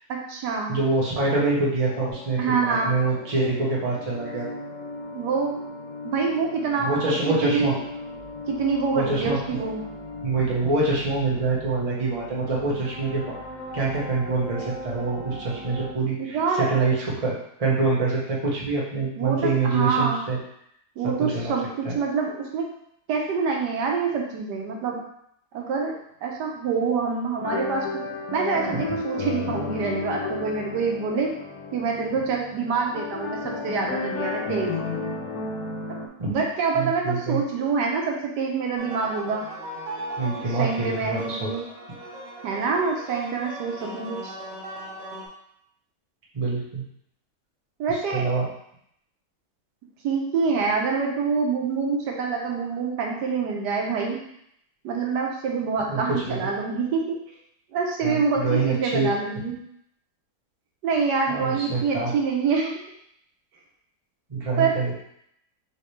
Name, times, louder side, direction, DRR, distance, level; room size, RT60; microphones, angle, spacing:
voice 1, 0.1-0.8 2.4-3.0 5.1-5.6 6.0-7.1 7.4-7.8 8.5-9.8 16.2-16.7 19.2-20.2 21.0-22.7 23.1-25.0 25.5-26.0 26.2-27.9 28.3-31.3 31.7-34.8 36.3-39.4 40.6-41.7 42.4-44.3 47.8-48.3 50.0-54.2 54.8-57.2 57.7-59.6 60.8-62.8 64.6-64.8, right 5 dB, 85° right, 0 dB, 1.4 m, -26 dB
voice 2, 0.7-4.5 6.8-7.7 8.9-9.4 10.2-13.4 13.7-17.3 17.6-20.4 21.0-21.5 21.8-22.0 28.7-28.8 36.2-36.3 36.7-37.4 40.2-41.5 46.3-46.8 47.9-48.5 55.9-56.4 58.0-59.1 61.3-62.1 64.3-64.9, right 3 dB, 25° right, -5 dB, 0.9 m, -25 dB
sound 1, 1.8-15.9, left 2 dB, 85° left, 1.5 m, -39 dB
sound 2, 27.4-36.1, left 4 dB, 70° left, 1.0 m, -32 dB
sound 3, 38.8-45.3, right 1 dB, 50° right, 0.9 m, -38 dB
5.4 x 2.9 x 3.2 m, 0.74 s
omnidirectional pair, 1.8 m